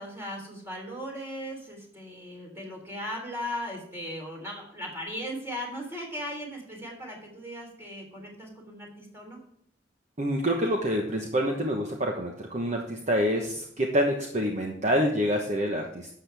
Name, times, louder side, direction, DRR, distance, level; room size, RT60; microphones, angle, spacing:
voice 1, 0.0-9.4, equal, 15° right, 0 dB, 3.6 m, -37 dB
voice 2, 10.2-16.1, equal, 40° right, 1 dB, 1.1 m, -27 dB
12.0 x 7.8 x 3.5 m, 0.68 s
head